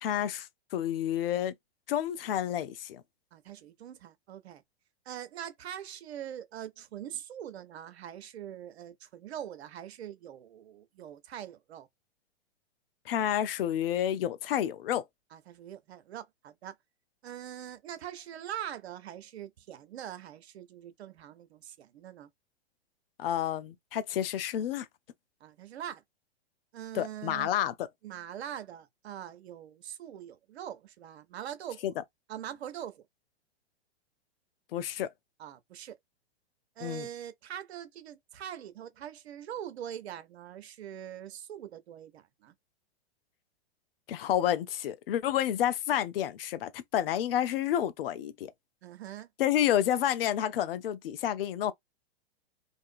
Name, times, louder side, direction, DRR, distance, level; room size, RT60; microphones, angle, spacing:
voice 1, 0.0-1.5 1.9-3.0 13.1-15.0 23.2-24.9 26.9-27.9 31.8-31.9 34.7-35.1 36.8-37.1 44.1-48.5 49.4-51.7, left 11 dB, 60° left, 0.5 m, -30 dB
voice 2, 3.3-4.6 5.1-11.9 15.3-16.7 17.2-22.3 25.4-26.0 26.7-27.5 28.0-31.9 32.3-33.0 35.4-35.9 36.8-42.5 48.8-49.3, right 10 dB, 75° right, 0.7 m, -43 dB
2.6 x 2.5 x 2.5 m
hypercardioid pair, 125°, 32 cm